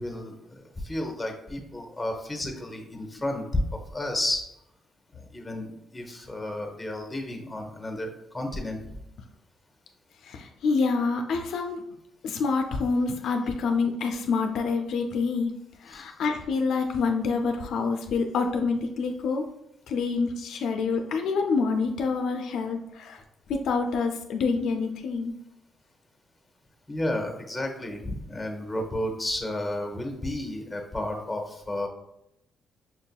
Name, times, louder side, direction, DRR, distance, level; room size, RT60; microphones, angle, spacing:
voice 1, 0.0-3.6 3.9-4.4 5.1-8.8 15.9-16.1 26.9-31.9, left 1 dB, 10° left, 3 dB, 0.8 m, -32 dB
voice 2, 10.2-11.8 12.2-15.5 15.8-19.4 19.9-23.2 23.5-25.3, left 4 dB, 75° left, 4 dB, 0.4 m, -27 dB
5.8 x 2.7 x 2.3 m, 0.84 s
cardioid pair, 90°, 0 cm